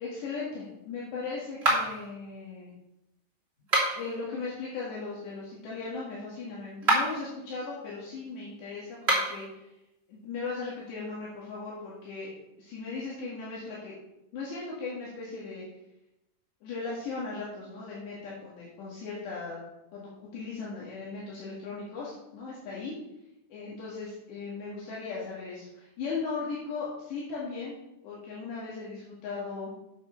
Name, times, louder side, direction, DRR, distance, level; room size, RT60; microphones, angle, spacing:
voice 1, 0.0-2.7 3.9-9.7 10.1-12.3 12.6-14.0 14.3-15.6 16.6-19.6 19.9-23.0 23.5-27.8 28.0-29.7, left 4 dB, 65° left, -6 dB, 4.0 m, -37 dB
Hyacinthe light switch edited, 1.6-2.1 3.6-4.2 6.7-7.2 8.9-9.4, right 2 dB, 15° right, 2.4 m, -26 dB
8.8 x 7.8 x 5.9 m, 0.91 s
omnidirectional pair, 5.8 m